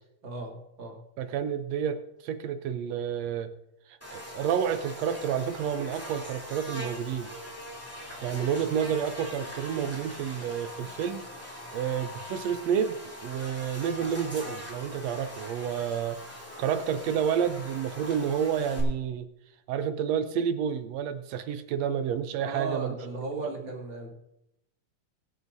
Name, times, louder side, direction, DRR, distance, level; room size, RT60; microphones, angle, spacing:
voice 1, 0.2-1.0 22.4-24.1, right 3 dB, 40° right, -1 dB, 2.7 m, -36 dB
voice 2, 1.2-3.5 3.9-7.3 8.2-16.2 16.6-19.3 19.7-22.9, right 8 dB, 75° right, 10 dB, 1.7 m, -30 dB
Buzz, 4.0-18.8, left 1 dB, 5° left, 2.3 m, -42 dB
23.5 x 8.4 x 2.7 m, 0.82 s
omnidirectional pair, 3.4 m